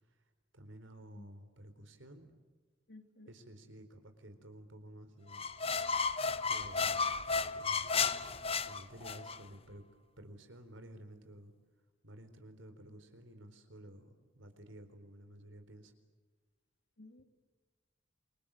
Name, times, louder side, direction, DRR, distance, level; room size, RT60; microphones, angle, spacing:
voice 1, 0.5-2.3 3.3-5.5 6.5-7.1 7.6-8.1 8.6-9.8 10.2-11.5 12.0-15.9, right 1 dB, 80° right, 8 dB, 4.2 m, -53 dB
voice 2, 2.9-3.3 17.0-17.2, left 2 dB, 60° left, 6 dB, 2.8 m, -55 dB
sound 1, 5.3-9.4, left 5 dB, 30° left, 0.8 m, -33 dB
28.5 x 24.5 x 7.7 m, 1.4 s
head